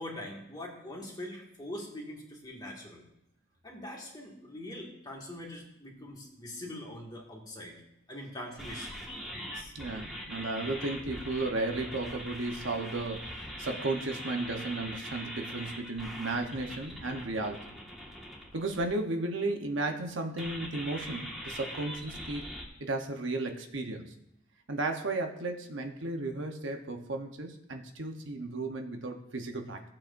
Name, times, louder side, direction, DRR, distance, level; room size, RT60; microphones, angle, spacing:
voice 1, 0.0-3.0 3.6-7.8 8.1-9.0 9.5-9.7, left 1 dB, 20° left, -2 dB, 2.0 m, -43 dB
sound 1, 8.6-18.8 20.4-22.6, equal, ahead, 1.6 m, -42 dB
voice 2, 9.7-17.7 18.5-22.4 22.8-24.1 24.7-29.8, right 2 dB, 65° right, 4 dB, 1.0 m, -34 dB
17.0 x 7.5 x 2.6 m, 0.80 s
head